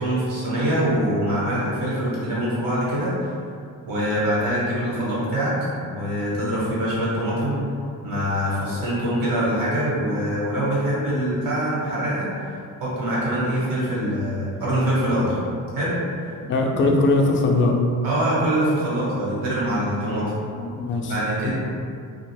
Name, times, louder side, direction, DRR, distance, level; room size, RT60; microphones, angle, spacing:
voice 1, 0.0-3.1 3.9-5.5 5.8-7.6 8.0-12.3 12.8-15.4 15.7-16.0 18.0-20.3 21.0-21.5, right 1 dB, 75° right, -8 dB, 1.3 m, -24 dB
voice 2, 16.4-17.8 20.6-21.1 21.5-21.6, left 2 dB, 35° left, 1 dB, 0.4 m, -20 dB
2.6 x 2.4 x 3.3 m, 2.3 s
cardioid pair, 125°, 35 cm